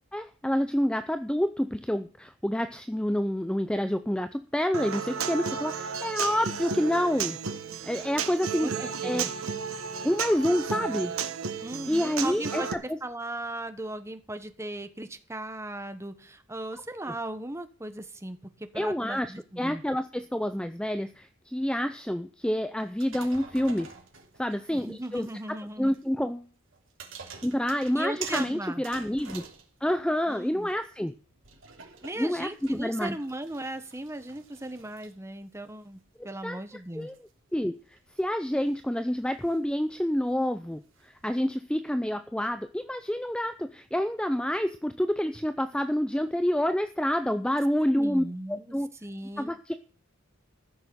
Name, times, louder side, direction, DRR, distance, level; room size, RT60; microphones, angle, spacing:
voice 1, 0.1-7.4 7.8-9.3 10.0-11.1 11.9-13.0 17.1-17.2 18.8-23.9 24.4-25.3 25.8-26.5 27.4-29.4 29.8-31.1 32.2-33.2 36.4-36.6 36.9-48.9 49.4-49.7, equal, 5° left, 10 dB, 0.5 m, -28 dB
Human voice / Acoustic guitar, 4.7-12.7, right 6 dB, 80° right, 1.4 m, -33 dB
voice 2, 8.6-9.3 11.6-12.7 13.0-18.4 18.7-19.8 24.7-25.9 27.9-28.8 30.3-30.7 32.0-36.0 36.2-37.1 48.0-48.7 49.0-49.5, right 1 dB, 15° right, 9 dB, 1.2 m, -37 dB
sound 1, 22.9-25.6 25.9-26.0 26.7-30.3 30.6-41.4, right 6 dB, 65° right, 3.1 m, -47 dB
15.0 x 6.6 x 7.9 m, 0.39 s
head